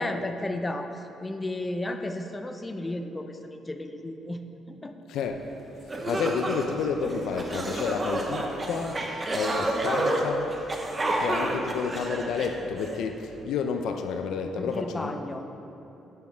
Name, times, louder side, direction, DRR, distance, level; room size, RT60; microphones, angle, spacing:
voice 1, 0.0-4.4 4.7-4.9 6.1-6.2 14.6-15.5, left 1 dB, 15° left, 6 dB, 0.4 m, -33 dB
sound 1, 5.5-5.6 5.9-13.0, right 1 dB, 20° right, 0.7 m, -29 dB
voice 2, 6.1-9.0 9.3-10.5 11.2-15.1, left 6 dB, 75° left, 5 dB, 0.5 m, -30 dB
8.5 x 7.1 x 4.3 m, 3.0 s
cardioid pair, 160°, 0 cm